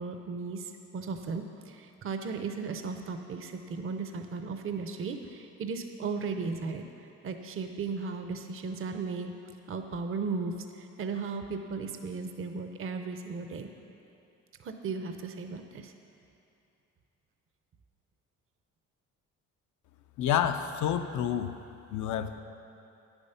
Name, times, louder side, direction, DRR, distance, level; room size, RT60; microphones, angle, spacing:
voice 1, 0.0-9.3 9.7-13.7 14.6-15.9, right 4 dB, 45° right, 6 dB, 0.7 m, -36 dB
voice 2, 20.2-21.5 21.9-22.4, left 9 dB, 75° left, 8 dB, 0.6 m, -29 dB
9.6 x 7.1 x 5.7 m, 2.7 s
cardioid pair, 90°, 30 cm